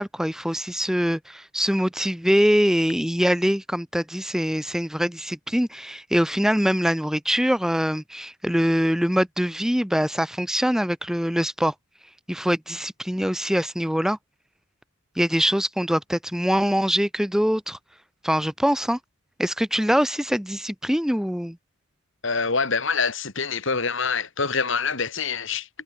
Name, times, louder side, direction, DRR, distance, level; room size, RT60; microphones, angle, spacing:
voice 1, 0.0-11.7 12.3-14.2 15.2-17.8 18.2-19.0 19.4-21.6, equal, ahead, 1.0 m, -23 dB
voice 2, 22.2-25.7, left 5 dB, 60° left, 2.2 m, -25 dB
head